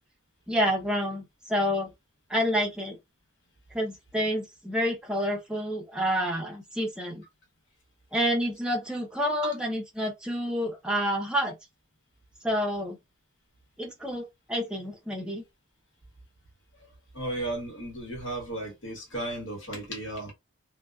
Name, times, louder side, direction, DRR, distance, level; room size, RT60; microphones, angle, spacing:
voice 1, 0.5-1.9 2.3-3.0 3.7-7.2 8.1-11.6 12.4-13.0 13.8-15.4, equal, 5° right, 0.5 m, -28 dB
voice 2, 17.1-20.3, right 1 dB, 70° left, 1.2 m, -34 dB
2.6 x 2.1 x 2.3 m
head